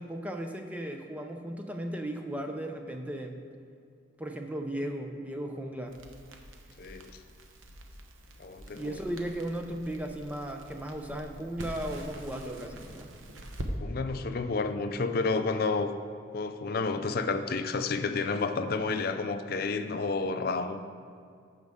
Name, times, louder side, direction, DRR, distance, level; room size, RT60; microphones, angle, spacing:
voice 1, 0.0-3.4 4.2-6.0 8.7-13.1, right 1 dB, 5° right, 3 dB, 0.5 m, -36 dB
Crackle, 5.9-13.7, right 1 dB, 85° right, 0.9 m, -45 dB
voice 2, 6.8-7.1 8.4-9.0 13.8-15.9 16.3-20.8, left 4 dB, 50° left, 9 dB, 0.4 m, -30 dB
14.5 x 5.3 x 3.6 m, 2.3 s
head